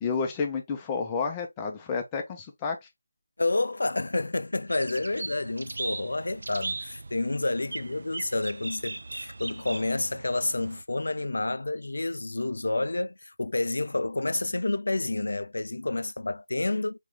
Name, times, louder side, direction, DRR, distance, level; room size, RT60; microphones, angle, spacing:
voice 1, 0.0-2.9, left 5 dB, 10° left, 0.6 m, -30 dB
voice 2, 3.4-17.0, left 2 dB, 75° left, 0.3 m, -29 dB
sound 1, 4.7-10.8, right 3 dB, 55° right, 0.4 m, -39 dB
3.5 x 3.0 x 3.2 m
figure-of-eight pair, 170°, 0 cm